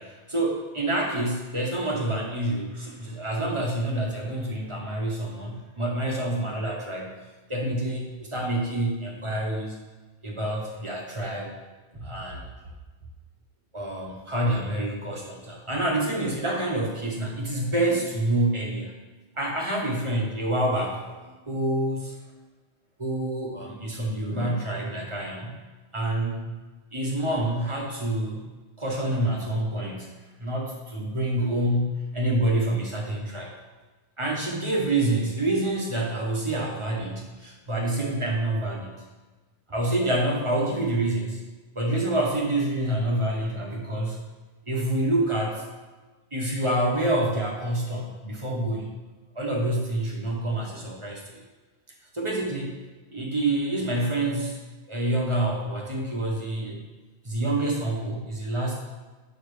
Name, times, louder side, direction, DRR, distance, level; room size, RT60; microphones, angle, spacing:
voice 1, 0.0-7.2 7.5-9.7 10.2-11.5 11.9-12.4 13.7-18.9 19.4-22.1 23.0-25.6 25.9-26.5 26.9-28.5 28.8-30.1 30.4-33.5 34.2-39.0 39.7-41.4 41.7-44.2 44.7-45.6 46.3-48.9 49.3-51.4 52.1-52.7 53.1-54.6 54.9-56.8 57.2-58.8, right 1 dB, 30° right, -2 dB, 1.1 m, -27 dB
7.3 x 5.4 x 3.2 m, 1.3 s
omnidirectional pair, 1.1 m